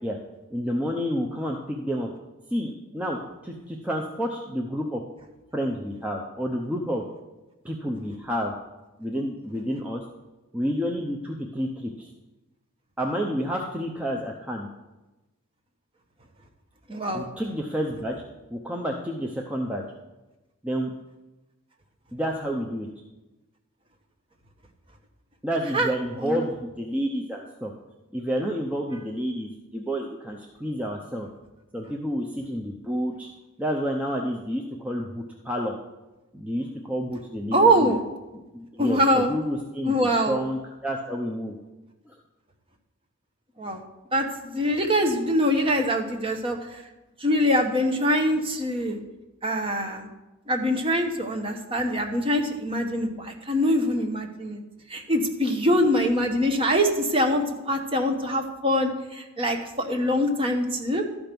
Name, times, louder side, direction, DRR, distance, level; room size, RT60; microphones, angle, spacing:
voice 1, 0.5-2.1 2.5-5.0 5.5-7.0 7.6-8.5 9.0-10.0 10.5-12.1 13.0-14.7 17.1-18.2 18.5-19.8 20.6-20.9 22.1-22.9 25.4-27.7 28.1-31.3 31.7-33.3 33.6-35.8 36.3-37.9 38.5-41.6 42.1-42.2, equal, 5° right, 0 dB, 0.6 m, -29 dB
voice 2, 16.9-17.3 25.7-25.9 26.2-26.4 37.5-38.0 38.8-39.3 39.8-40.4 43.6-43.8 44.1-46.8 47.2-49.0 49.4-50.1 50.5-54.6 54.9-61.0, equal, 25° right, 3 dB, 1.0 m, -24 dB
12.5 x 5.2 x 6.0 m, 1.1 s
head